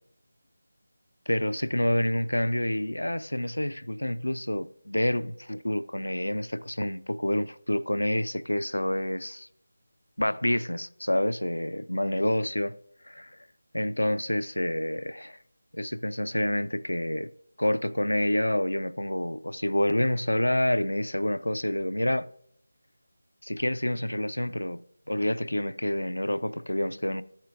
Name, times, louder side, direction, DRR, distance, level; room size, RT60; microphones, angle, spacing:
voice 1, 1.3-9.5 10.2-12.8 13.0-13.3 13.7-15.4 15.7-17.3 17.6-22.3 23.4-27.2, left 1 dB, 75° left, 0.4 m, -28 dB
13.5 x 7.3 x 2.4 m
figure-of-eight pair, 160°, 0 cm